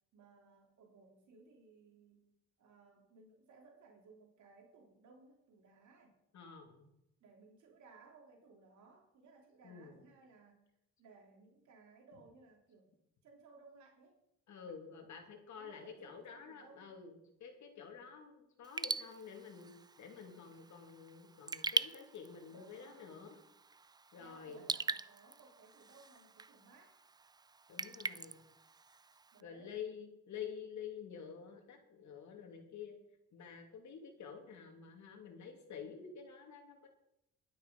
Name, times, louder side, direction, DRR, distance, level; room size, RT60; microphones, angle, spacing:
voice 1, 0.1-2.3 2.6-6.1 7.2-10.7 11.0-12.9 13.2-14.2 15.5-16.9 22.5-23.2 24.2-27.0 29.3-29.8, right 4 dB, 75° right, 1 dB, 3.1 m, -61 dB
voice 2, 6.3-6.9 9.6-9.9 14.5-23.4 24.1-24.7 27.7-28.4 29.4-32.9 33.3-36.9, left 7 dB, 75° left, 3 dB, 2.7 m, -49 dB
Raindrop / Drip, 18.6-29.4, right 4 dB, 15° right, 0.3 m, -43 dB
12.0 x 10.5 x 5.3 m, 0.83 s
cardioid pair, 115°, 29 cm